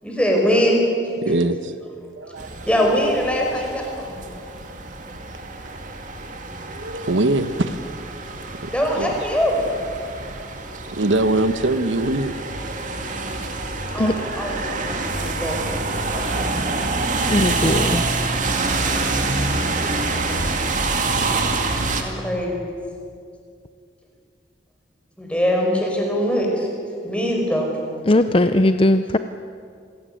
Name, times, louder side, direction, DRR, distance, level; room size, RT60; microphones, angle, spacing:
voice 1, 0.0-0.8 2.7-4.2 8.7-9.6 13.9-16.3 22.0-22.6 25.2-26.7 27.0-27.7, equal, 5° left, 0 dB, 5.1 m, -22 dB
voice 2, 1.2-1.7 2.2-2.7 5.6-5.8 6.2-6.3 6.6-7.8 8.2-8.7 9.0-9.1 10.7-12.4, right 2 dB, 90° right, 10 dB, 1.2 m, -23 dB
sound 1, 2.4-22.0, right 3 dB, 45° right, 2.3 m, -26 dB
voice 3, 17.3-18.0 28.1-29.2, left 1 dB, 30° left, 10 dB, 0.6 m, -18 dB
27.0 x 17.0 x 9.3 m, 2.3 s
head